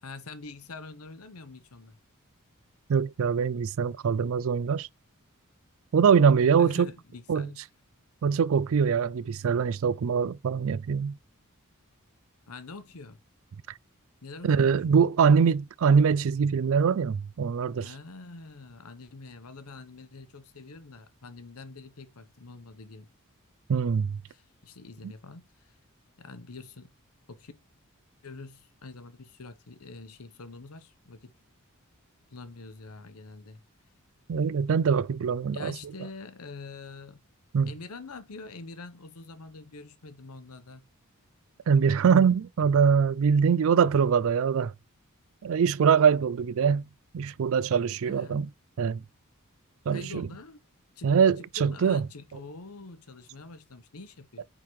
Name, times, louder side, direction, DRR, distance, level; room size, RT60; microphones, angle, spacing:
voice 1, 0.0-2.0 6.6-7.6 12.5-13.2 14.2-14.7 17.8-23.1 24.3-25.7 26.2-26.9 27.3-27.5 28.2-31.3 32.3-33.6 35.5-37.2 37.7-40.8 48.0-48.4 49.9-50.6 51.0-51.1 51.4-54.4, left 3 dB, 90° left, 1.0 m, -45 dB
voice 2, 2.9-4.9 5.9-6.9 7.3-7.5 8.2-11.2 14.4-17.9 23.7-24.2 25.0-25.1 34.3-35.7 37.5-37.7 41.7-44.7 45.4-46.9 47.1-48.5 48.8-49.0 49.9-50.3 51.0-52.1, right 6 dB, 65° right, 0.4 m, -23 dB
8.7 x 3.7 x 3.1 m
head